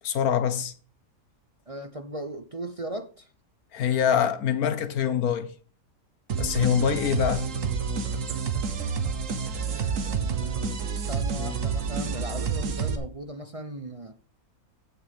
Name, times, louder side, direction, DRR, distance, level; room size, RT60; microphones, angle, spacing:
voice 1, 0.0-0.7 3.7-5.5 6.4-7.5, left 8 dB, 90° left, 1.4 m, -24 dB
voice 2, 1.7-3.3 9.7-10.7 10.9-14.1, right 1 dB, 35° right, 0.6 m, -37 dB
sound 1, 6.3-13.0, right 5 dB, 60° right, 1.5 m, -29 dB
15.0 x 6.4 x 3.6 m
omnidirectional pair, 1.5 m